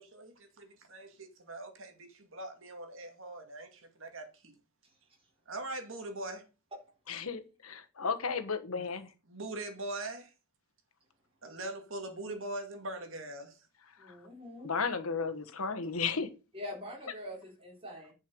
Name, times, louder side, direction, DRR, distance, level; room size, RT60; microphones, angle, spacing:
voice 1, 0.0-4.5 5.5-6.4 8.7-8.8 9.3-10.3 11.4-13.5, right 2 dB, 60° right, 2.2 m, -42 dB
voice 2, 7.1-9.1 14.6-16.3, left 5 dB, 85° left, 1.3 m, -34 dB
voice 3, 14.0-14.7 16.5-18.1, left 1 dB, 25° right, 4.0 m, -44 dB
10.5 x 5.5 x 5.3 m
head